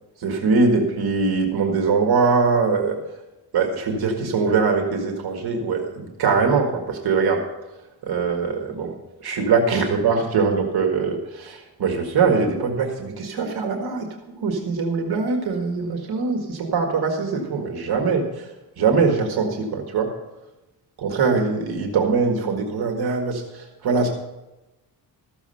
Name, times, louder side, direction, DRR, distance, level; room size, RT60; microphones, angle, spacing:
voice 1, 0.2-3.0 3.5-7.4 8.0-18.5 18.8-20.1 21.0-24.1, right 4 dB, 65° right, 3 dB, 1.8 m, -22 dB
14.0 x 7.2 x 5.6 m, 1.0 s
cardioid pair, 145°, 40 cm